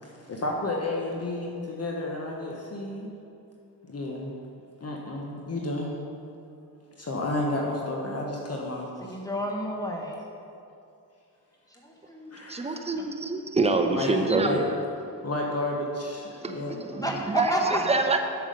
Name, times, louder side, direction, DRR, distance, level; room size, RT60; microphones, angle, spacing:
voice 1, 0.0-3.1 3.9-4.3 4.8-6.0 7.0-9.2 12.3-12.8 13.9-14.2 14.4-14.6 15.2-16.7, left 2 dB, 35° left, -1 dB, 1.3 m, -31 dB
voice 2, 9.0-10.2 11.8-12.6 13.0-13.1 17.0-17.8, equal, 10° left, -1 dB, 1.4 m, -31 dB
voice 3, 12.5-14.7 16.4-18.2, right 3 dB, 15° right, 5 dB, 0.8 m, -26 dB
7.3 x 7.3 x 5.3 m, 2.6 s
supercardioid pair, 65°, 41 cm